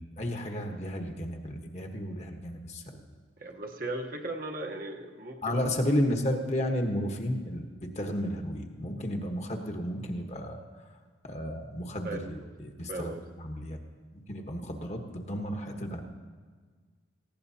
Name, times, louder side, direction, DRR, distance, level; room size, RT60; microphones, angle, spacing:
voice 1, 0.0-3.0 5.4-10.6 11.2-13.8 14.1-16.0, equal, 35° left, 4 dB, 1.1 m, -33 dB
voice 2, 3.4-5.7 12.0-12.5 12.9-13.2, right 2 dB, 50° right, 2 dB, 1.0 m, -37 dB
18.5 x 15.5 x 2.8 m, 1.5 s
head